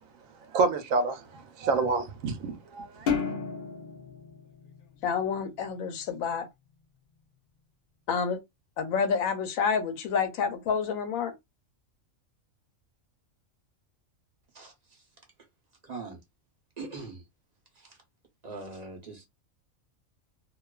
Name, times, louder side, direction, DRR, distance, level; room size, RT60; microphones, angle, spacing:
voice 1, 0.5-3.1, right 4 dB, 80° right, 1.0 m, -28 dB
sound 1, 3.1-5.6, left 6 dB, 55° left, 0.6 m, -33 dB
voice 2, 5.0-6.5 8.1-8.4 8.8-11.3, left 6 dB, 85° left, 1.0 m, -28 dB
voice 3, 14.5-15.1 15.8-16.2 16.8-17.3 17.7-18.0 18.4-19.3, right 3 dB, 40° right, 0.7 m, -42 dB
2.4 x 2.3 x 2.2 m
omnidirectional pair, 1.4 m